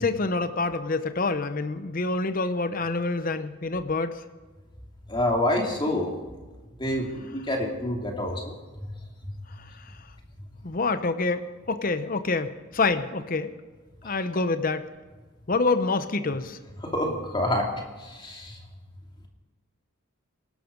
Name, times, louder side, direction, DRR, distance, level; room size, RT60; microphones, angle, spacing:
voice 1, 0.0-4.2 9.6-9.9 10.6-13.5 14.0-14.9 15.5-16.6, left 3 dB, 40° left, 10 dB, 0.8 m, -27 dB
voice 2, 5.1-6.1 6.8-8.9 14.0-14.1 16.8-17.7 18.0-18.6, left 1 dB, 25° left, 1 dB, 2.6 m, -27 dB
18.0 x 12.5 x 5.2 m, 1.3 s
head